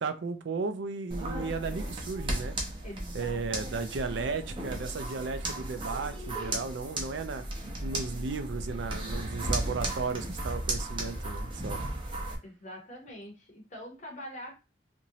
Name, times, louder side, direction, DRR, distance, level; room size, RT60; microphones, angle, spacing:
voice 1, 0.0-2.6 3.1-7.4 7.8-11.8, right 4 dB, 70° right, 9 dB, 0.4 m, -35 dB
sound 1, 1.1-12.3, right 1 dB, 25° right, 0.6 m, -35 dB
voice 2, 2.8-3.9 12.4-14.5, equal, 40° left, 1 dB, 0.8 m, -44 dB
3.0 x 2.6 x 2.7 m, 0.29 s
head